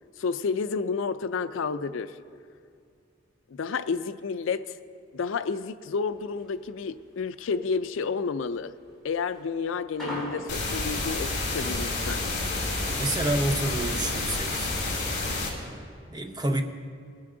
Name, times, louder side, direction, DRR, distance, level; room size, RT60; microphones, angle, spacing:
voice 1, 0.2-2.2 3.5-4.7 5.1-8.7 9.0-12.2, left 5 dB, 75° left, 13 dB, 0.4 m, -30 dB
sound 1, 6.1-11.1, equal, ahead, 3.5 m, -40 dB
sound 2, 10.5-15.5, left 2 dB, 40° left, 2.7 m, -29 dB
voice 2, 13.0-14.7 16.1-16.6, right 1 dB, 20° right, 5 dB, 0.6 m, -28 dB
19.5 x 9.7 x 3.8 m, 2.3 s
head